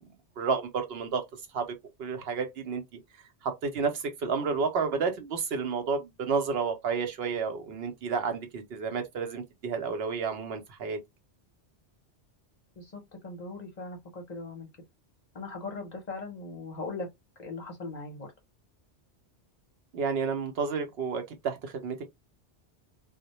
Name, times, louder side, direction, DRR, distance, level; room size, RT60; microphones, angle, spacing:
voice 1, 0.4-1.2 1.5-1.7 2.0-2.8 3.4-11.0 19.9-22.0, right 5 dB, 65° right, 0.7 m, -31 dB
voice 2, 12.8-14.7 15.3-17.1 17.4-18.3, left 3 dB, 45° left, 0.7 m, -39 dB
2.1 x 2.1 x 2.8 m
omnidirectional pair, 1.2 m